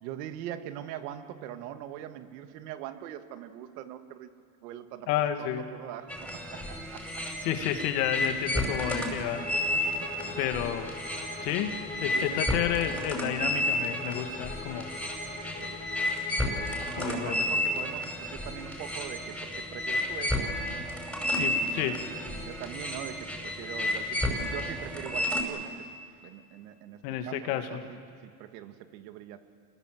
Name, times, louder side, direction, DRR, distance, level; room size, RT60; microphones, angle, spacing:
voice 1, 0.0-4.3 4.6-5.1 5.4-7.0 7.3-7.5 9.6-10.4 12.1-12.4 14.9-15.1 15.4-15.8 16.9-20.8 21.5-25.7 26.2-29.4, right 11 dB, 90° right, 8 dB, 2.0 m, -42 dB
voice 2, 5.1-5.6 7.2-9.4 10.4-10.9 11.4-11.7 12.0-14.9 16.9-17.4 21.4-22.0 27.0-27.8, left 10 dB, 85° left, 7 dB, 2.2 m, -31 dB
sound 1, 6.1-25.4, left 1 dB, ahead, 5.3 m, -32 dB
Bowed string instrument, 9.4-17.9, left 5 dB, 20° left, 1.0 m, -44 dB
27.0 x 21.0 x 7.8 m, 2.3 s
cardioid pair, 125°, 46 cm